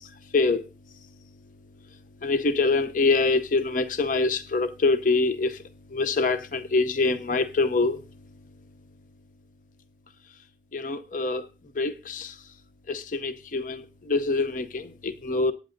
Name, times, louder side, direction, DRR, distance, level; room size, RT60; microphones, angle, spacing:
voice 1, 2.2-5.6 5.9-8.0 10.7-11.5 11.8-12.3 12.9-15.5, left 3 dB, 50° left, 0.6 m, -25 dB
22.5 x 9.3 x 2.6 m
head